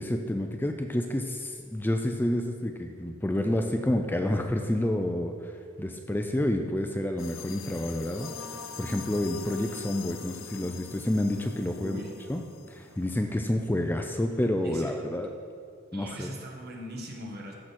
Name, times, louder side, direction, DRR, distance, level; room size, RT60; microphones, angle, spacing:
voice 1, 0.0-8.3 8.8-12.0 12.3-12.4 12.7-15.3 15.9-16.3, left 1 dB, 10° left, 4 dB, 0.4 m, -29 dB
sound 1, 7.2-13.5, left 6 dB, 70° left, 0.7 m, -44 dB
voice 2, 11.7-12.1 14.6-14.9 15.9-17.5, equal, 50° right, -1 dB, 1.6 m, -40 dB
14.0 x 6.2 x 4.3 m, 2.2 s
head